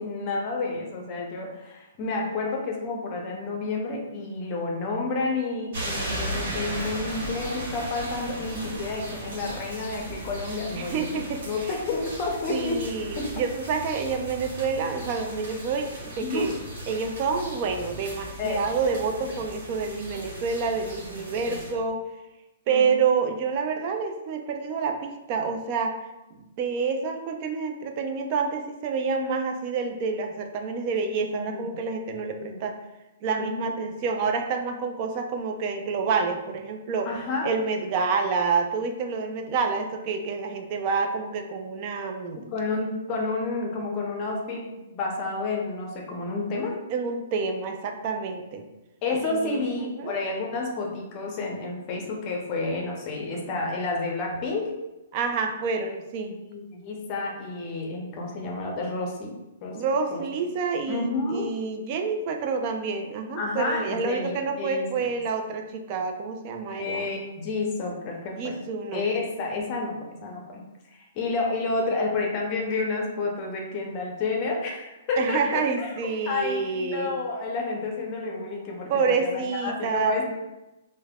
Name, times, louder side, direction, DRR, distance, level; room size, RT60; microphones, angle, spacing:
voice 1, 0.0-11.2 11.5-12.8 13.2-13.3 16.2-16.5 18.4-18.6 21.1-21.6 22.7-22.8 31.3-31.8 32.4-32.6 33.4-33.7 37.1-37.6 42.5-44.6 44.9-46.8 49.0-54.7 56.5-59.3 59.6-59.8 60.1-60.2 60.9-61.5 63.4-65.1 66.7-68.6 68.9-70.6 70.9-75.9 76.3-80.2, left 3 dB, 35° left, 0 dB, 0.6 m, -30 dB
sound 1, 5.7-21.7, right 1 dB, 60° right, 1.1 m, -37 dB
voice 2, 10.8-11.7 12.5-16.5 16.9-22.0 22.7-26.0 26.4-32.8 33.2-37.1 37.4-42.4 46.9-48.6 49.2-50.2 55.1-56.4 59.7-67.1 68.4-69.0 75.2-77.2 78.9-80.1, right 5 dB, 40° right, 4 dB, 0.4 m, -28 dB
3.2 x 2.1 x 2.3 m, 0.99 s
hypercardioid pair, 125°, 0 cm